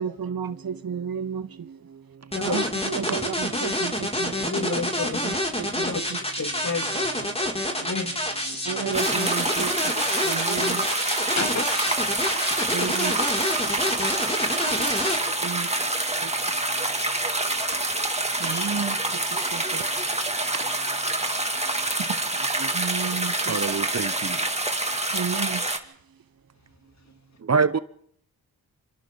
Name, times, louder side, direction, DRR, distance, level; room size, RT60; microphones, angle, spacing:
voice 1, 0.0-1.5 2.4-4.8 5.2-6.2 8.6-9.7 10.2-10.8 12.7-13.1 15.4-15.7 16.2-16.3 18.4-19.0 19.3-19.8 22.7-23.6 25.1-25.6, right 7 dB, 65° right, 1.5 m, -32 dB
voice 2, 2.3-2.6 3.1-3.2 4.4-5.2 5.8-6.9 7.2-7.3 7.8-8.1 11.4-11.6 12.2-12.9 17.6-17.7 18.4-18.7, left 4 dB, 45° left, 3.3 m, -31 dB
sound 1, 2.3-15.2, left 1 dB, 15° left, 6.3 m, -27 dB
sound 2, 8.9-25.8, right 2 dB, 15° right, 2.7 m, -27 dB
voice 3, 23.5-24.4 27.5-27.8, right 5 dB, 40° right, 1.0 m, -24 dB
27.0 x 26.5 x 4.1 m
cardioid pair, 45°, 39 cm